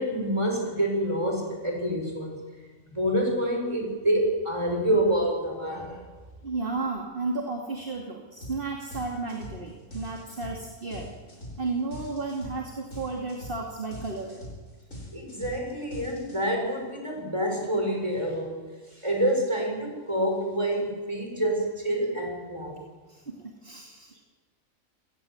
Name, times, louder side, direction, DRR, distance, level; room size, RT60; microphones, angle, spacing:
voice 1, 0.0-2.4 2.9-6.0 15.1-18.6 18.9-22.8, right 1 dB, 20° right, 1 dB, 7.2 m, -27 dB
voice 2, 6.4-11.1 11.6-14.4 23.1-24.2, right 3 dB, 45° right, 0 dB, 2.8 m, -33 dB
sound 1, 8.4-8.6 8.9-16.7, left 1 dB, 80° left, 7.9 m, -42 dB
29.5 x 18.5 x 8.0 m, 1.4 s
omnidirectional pair, 1.4 m